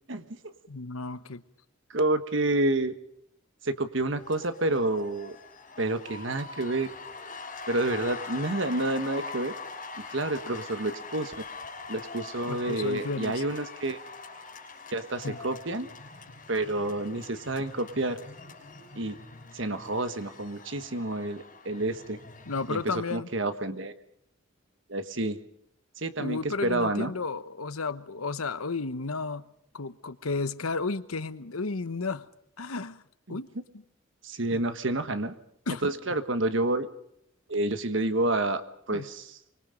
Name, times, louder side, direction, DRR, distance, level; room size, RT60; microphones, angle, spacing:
voice 1, 0.1-0.5 1.9-2.9 3.6-5.4 5.8-6.9 7.7-9.5 10.1-11.3 11.9-14.0 14.9-15.9 16.5-18.2 18.9-19.2 19.5-22.2 22.7-23.9 24.9-25.4 26.0-27.1 33.3-33.4 34.2-35.3 35.8-36.9 37.5-39.4, right 2 dB, 60° right, 1.4 m, -29 dB
voice 2, 0.7-1.4 12.5-13.4 15.2-15.4 22.5-23.3 26.2-32.3 32.6-33.0 33.3-33.5 34.5-34.6 35.7-35.9 38.9-39.1, left 4 dB, 90° left, 1.1 m, -33 dB
sound 1, 4.2-22.9, left 4 dB, 35° left, 6.1 m, -43 dB
25.5 x 24.5 x 5.3 m
head